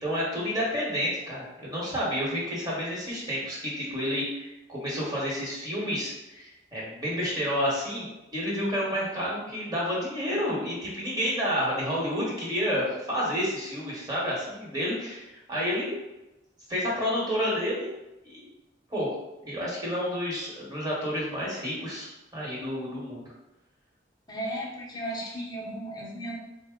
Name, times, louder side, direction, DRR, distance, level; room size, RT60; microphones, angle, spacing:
voice 1, 0.0-15.9 16.7-17.9 18.2-18.5 18.9-19.1 19.4-23.2, equal, 20° right, -5 dB, 1.2 m, -30 dB
voice 2, 24.3-26.4, right 1 dB, 20° left, -3 dB, 0.7 m, -35 dB
4.0 x 2.1 x 3.6 m, 0.97 s
head